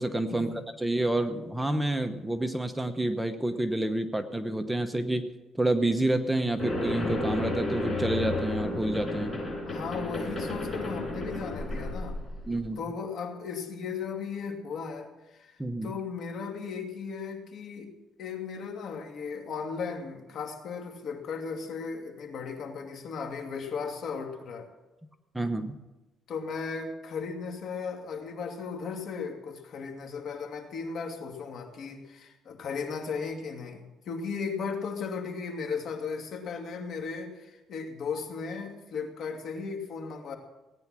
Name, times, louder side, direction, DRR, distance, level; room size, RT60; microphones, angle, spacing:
voice 1, 0.0-5.3 5.5-9.4 12.5-12.8 15.6-15.9 25.3-25.8, right 1 dB, 5° right, 7 dB, 0.9 m, -29 dB
sound 1, 6.6-12.6, left 2 dB, 20° left, 6.8 m, -32 dB
voice 2, 9.6-12.2 12.8-15.1 15.4-15.5 15.8-17.9 18.2-24.7 26.3-40.4, left 5 dB, 60° left, 3 dB, 2.5 m, -36 dB
17.5 x 9.6 x 6.1 m, 1.1 s
cardioid pair, 120°, 0 cm